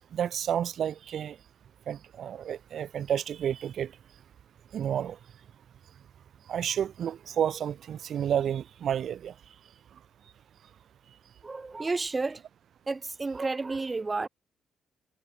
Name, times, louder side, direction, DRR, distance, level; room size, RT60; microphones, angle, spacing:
voice 1, 0.1-1.4 1.9-3.9 4.7-5.2 6.5-9.3, right 9 dB, 60° right, 5.0 m, -30 dB
voice 2, 11.4-12.4 12.9-14.3, right 3 dB, 20° right, 7.8 m, -31 dB
cardioid pair, 125°, 0 cm